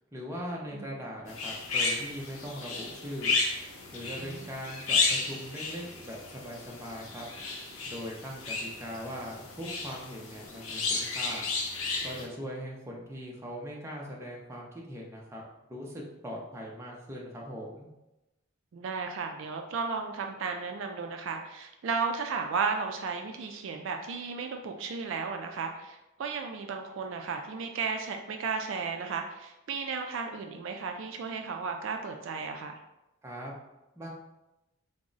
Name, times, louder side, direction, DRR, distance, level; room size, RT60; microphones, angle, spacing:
voice 1, 0.1-3.3 3.9-7.3 7.9-11.5 12.0-15.4 15.7-17.9 33.2-33.5 34.0-34.1, equal, 15° right, -3 dB, 0.5 m, -40 dB
sound 1, 1.3-12.3, left 3 dB, 80° left, 0.7 m, -33 dB
voice 2, 4.2-4.5 18.7-32.8, right 5 dB, 60° right, 4 dB, 0.3 m, -34 dB
3.6 x 2.0 x 3.8 m, 0.96 s
head